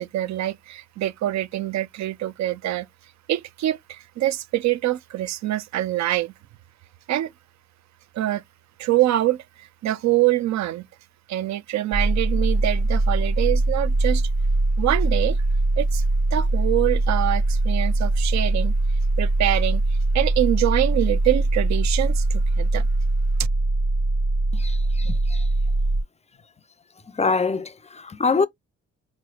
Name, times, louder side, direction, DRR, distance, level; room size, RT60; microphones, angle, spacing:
voice 1, 0.0-2.9 3.3-6.3 7.1-7.3 8.1-8.4 8.8-10.9 11.3-14.3 14.8-15.4 15.8-16.0 16.3-18.7 19.2-19.8 20.1-22.9, right 14 dB, 65° right, 0.5 m, -25 dB
sound 1, 11.9-26.0, right 2 dB, 45° right, 1.1 m, -22 dB
voice 2, 24.5-25.4 27.2-28.5, left 4 dB, 20° left, 0.5 m, -25 dB
4.0 x 3.2 x 2.3 m
cardioid pair, 90°, 30 cm